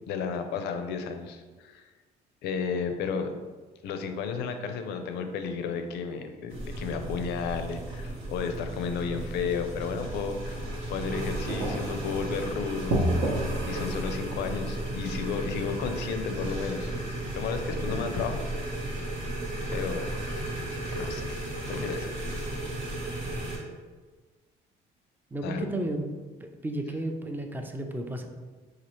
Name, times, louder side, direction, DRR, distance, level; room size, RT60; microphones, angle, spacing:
voice 1, 0.1-1.9 2.4-3.3 3.8-13.3 13.6-16.9 17.3-18.4 19.7-20.1 20.9-21.4 21.7-22.1 25.4-25.6, left 5 dB, 80° left, 7 dB, 0.4 m, -33 dB
sound 1, 6.5-23.6, right 1 dB, 90° right, 1.4 m, -34 dB
sound 2, 7.4-7.6 8.8-8.9 9.9-10.5 11.0-20.2, right 1 dB, 60° right, 0.7 m, -35 dB
voice 2, 25.3-26.1 26.6-28.3, right 1 dB, 10° right, 4 dB, 0.4 m, -32 dB
4.1 x 2.4 x 3.0 m, 1.4 s
cardioid pair, 110°, 17 cm